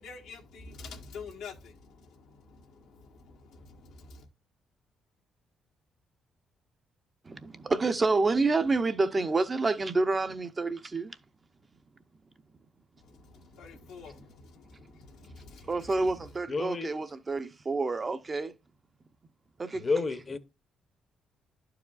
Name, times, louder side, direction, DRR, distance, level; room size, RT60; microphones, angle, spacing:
voice 1, 0.0-4.2 13.0-16.1, left 4 dB, 90° left, 1.3 m, -48 dB
voice 2, 7.2-11.2 15.7-18.5 19.6-19.8, right 3 dB, 30° right, 0.6 m, -28 dB
voice 3, 16.5-16.9 19.8-20.4, left 4 dB, 35° left, 0.8 m, -30 dB
11.5 x 4.8 x 2.4 m
cardioid pair, 90°, 0 cm